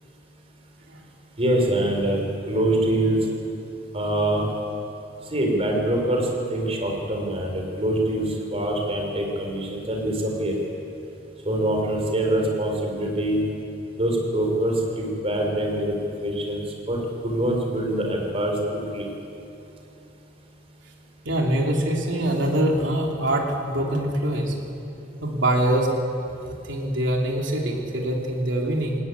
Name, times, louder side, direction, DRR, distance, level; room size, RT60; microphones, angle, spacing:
voice 1, 1.4-2.2 2.5-3.2 3.9-4.5 5.3-8.2 8.5-10.5 11.4-13.4 14.0-16.6 16.9-18.6 18.9-19.1, right 1 dB, 30° right, 1 dB, 4.2 m, -24 dB
voice 2, 21.2-24.6 25.2-25.9 26.4-29.0, right 1 dB, 80° right, 0 dB, 3.2 m, -24 dB
20.5 x 17.0 x 9.6 m, 2.8 s
head